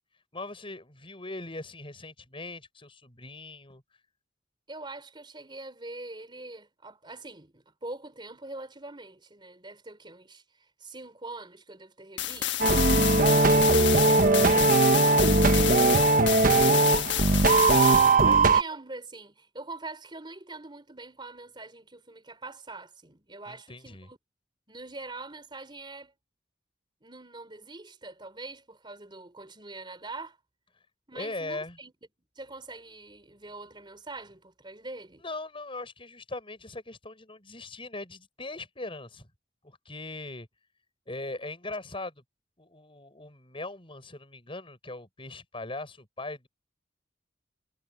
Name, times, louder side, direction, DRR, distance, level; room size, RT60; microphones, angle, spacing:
voice 1, 0.3-3.8 12.9-15.2 15.5-18.5 23.5-24.1 31.1-31.8 35.2-39.3 39.6-40.5 41.1-42.2 42.6-46.5, left 2 dB, 30° left, 6.9 m, -40 dB
voice 2, 4.7-12.9 18.4-24.2 24.7-26.1 27.0-30.4 31.1-31.9 32.4-35.2, right 2 dB, 25° right, 4.3 m, -43 dB
sound 1, 12.2-18.2, left 12 dB, 75° left, 1.3 m, -29 dB
sound 2, 12.6-18.6, right 3 dB, 50° right, 1.1 m, -20 dB
head